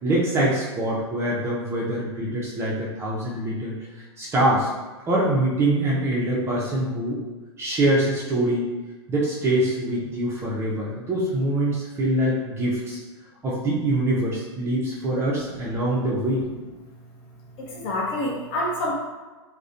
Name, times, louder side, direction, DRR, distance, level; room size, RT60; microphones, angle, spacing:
voice 1, 0.0-3.7 4.2-4.7 5.1-7.2 7.6-8.6 9.1-13.0 13.4-16.4, right 1 dB, 20° right, -5 dB, 0.4 m, -24 dB
voice 2, 17.6-18.9, left 1 dB, 40° left, -3 dB, 0.7 m, -27 dB
2.4 x 2.1 x 2.5 m, 1.3 s
hypercardioid pair, 130°, 14 cm